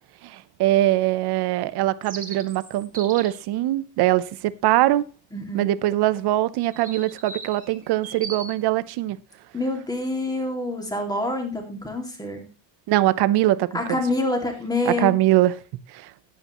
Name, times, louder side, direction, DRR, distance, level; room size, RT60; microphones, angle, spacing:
voice 1, 0.2-5.1 5.5-9.2 12.9-14.0 14.9-15.5 15.9-16.1, right 15 dB, 55° right, 0.8 m, -22 dB
sound 1, 2.0-3.4 6.6-8.5, right 4 dB, 15° right, 2.1 m, -38 dB
voice 2, 5.3-5.7 9.5-12.4 13.7-15.1, left 2 dB, 10° left, 2.3 m, -27 dB
14.5 x 9.6 x 3.0 m
cardioid pair, 145°, 47 cm